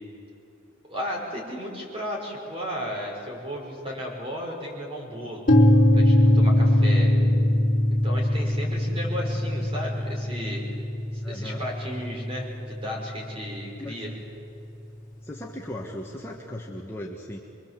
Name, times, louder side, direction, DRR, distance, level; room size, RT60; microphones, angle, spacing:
voice 1, 0.9-5.5 5.9-7.1 7.9-10.6 11.1-14.1, equal, 25° right, -1 dB, 5.6 m, -34 dB
sound 1, 5.5-13.4, left 1 dB, 40° left, 3.5 m, -22 dB
voice 2, 11.2-11.6 13.8-14.0 15.2-17.4, left 1 dB, 10° left, -2 dB, 1.5 m, -37 dB
26.5 x 23.0 x 7.7 m, 2.8 s
head